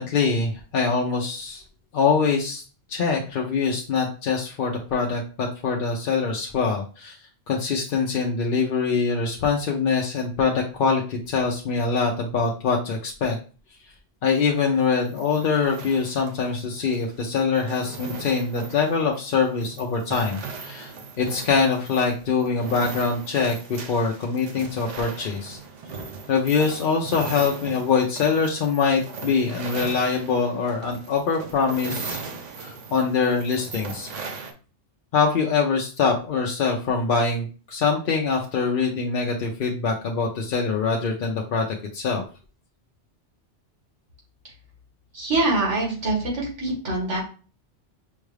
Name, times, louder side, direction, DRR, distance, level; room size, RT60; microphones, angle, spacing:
voice 1, 0.0-1.6 1.9-2.6 2.9-7.2 7.5-13.4 14.2-25.6 26.3-32.2 32.6-34.1 35.1-41.7 41.9-42.2, left 5 dB, 55° left, 0 dB, 0.7 m, -24 dB
Marleys Approach, 14.6-34.5, right 4 dB, 50° right, 0.6 m, -38 dB
voice 2, 45.1-47.2, right 2 dB, 90° right, -2 dB, 1.9 m, -24 dB
5.4 x 2.3 x 3.2 m, 0.37 s
omnidirectional pair, 1.2 m